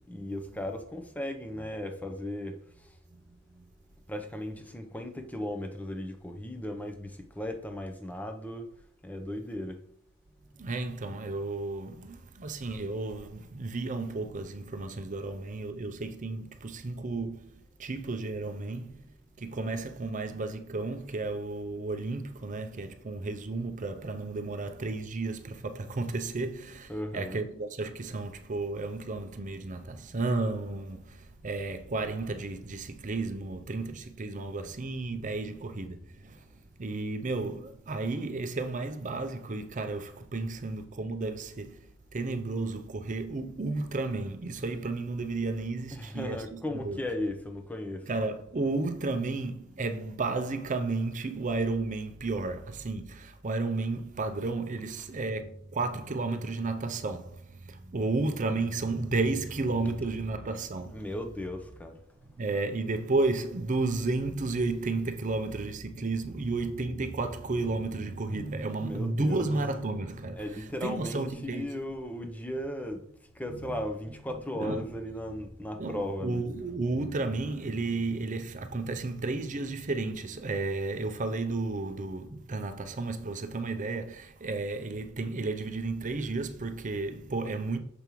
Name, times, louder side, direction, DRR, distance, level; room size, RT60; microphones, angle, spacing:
voice 1, 0.1-3.0 4.1-8.7 9.0-9.8 26.9-27.4 45.9-48.1 60.9-62.0 68.8-69.5 70.3-73.0 73.3-76.4, left 1 dB, 5° left, 0.6 m, -36 dB
voice 2, 10.6-19.0 19.4-36.5 36.8-46.4 46.8-47.0 48.1-61.0 62.4-71.6 73.5-73.7 74.5-74.8 75.7-87.8, right 3 dB, 35° right, 0.5 m, -33 dB
6.9 x 5.2 x 3.0 m
head